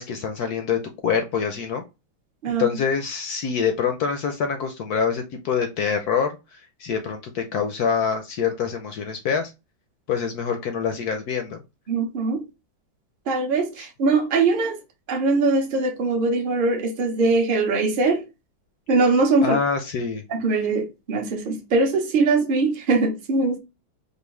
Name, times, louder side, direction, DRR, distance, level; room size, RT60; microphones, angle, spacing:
voice 1, 0.0-1.8 2.6-9.5 10.1-11.6 19.4-20.2, left 6 dB, 70° left, 0.9 m, -25 dB
voice 2, 11.9-12.4 13.3-14.8 15.1-18.2 18.9-19.6 20.3-23.6, right 3 dB, 50° right, 0.6 m, -21 dB
4.5 x 2.7 x 3.1 m
omnidirectional pair, 2.2 m